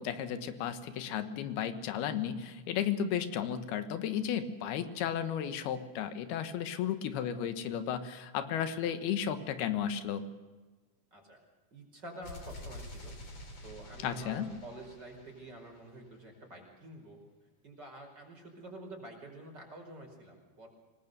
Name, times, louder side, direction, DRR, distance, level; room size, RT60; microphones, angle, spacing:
voice 1, 0.0-10.2 14.0-14.5, left 9 dB, 90° left, 9 dB, 3.3 m, -34 dB
voice 2, 11.7-13.2 13.6-17.2 17.6-20.7, right 1 dB, 25° right, 2 dB, 5.5 m, -48 dB
sound 1, 12.2-16.1, left 1 dB, 40° left, 4.8 m, -48 dB
27.0 x 19.5 x 6.8 m, 1.3 s
omnidirectional pair, 4.3 m